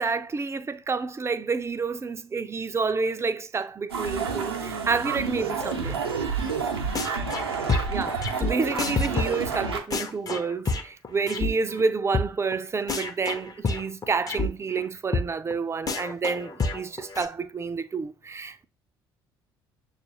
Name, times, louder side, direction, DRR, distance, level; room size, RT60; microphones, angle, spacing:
voice 1, 0.0-6.0 7.9-18.7, right 4 dB, 20° right, 0.4 m, -29 dB
sound 1, 3.9-9.8, right 5 dB, 85° right, 0.6 m, -29 dB
sound 2, 6.9-7.4 7.7-11.5 11.8-11.9 12.1-12.3 12.5-12.6 12.9-14.5 14.7-14.8 15.1-15.2 15.5-15.6 15.9-17.3, left 3 dB, 30° left, 0.7 m, -28 dB
6.5 x 2.4 x 2.9 m
figure-of-eight pair, 55°, 13 cm